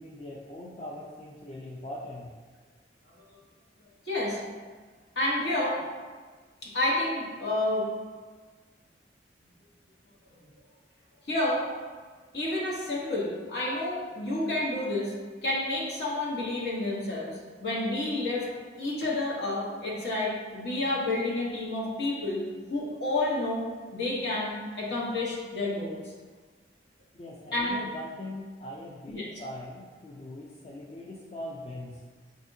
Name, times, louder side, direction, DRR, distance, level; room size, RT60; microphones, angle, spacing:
voice 1, 0.0-2.3 27.1-32.0, left 1 dB, 35° left, -4 dB, 0.4 m, -41 dB
voice 2, 4.1-4.4 5.2-5.8 6.6-7.9 11.3-11.7 12.3-15.1 15.4-17.3 17.6-18.5 18.8-22.4 22.7-23.6 23.9-26.0 27.5-27.8 29.1-29.3, left 2 dB, 65° left, -5 dB, 1.1 m, -29 dB
7.0 x 2.6 x 2.6 m, 1.5 s
head